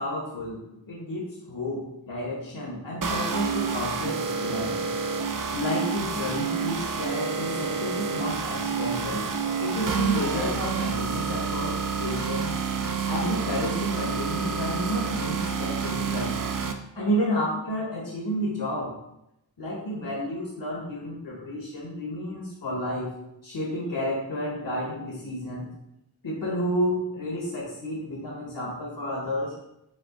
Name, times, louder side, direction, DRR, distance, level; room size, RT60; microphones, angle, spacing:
voice 1, 0.0-4.8 5.5-9.3 9.6-12.6 13.1-16.4 16.9-18.9 19.6-23.1 23.4-25.7 26.2-29.5, equal, 65° left, -3 dB, 1.2 m, -31 dB
sound 1, 3.0-16.7, right 5 dB, 45° right, 0.5 m, -29 dB
5.8 x 2.4 x 3.7 m, 0.82 s
cardioid pair, 40°, 46 cm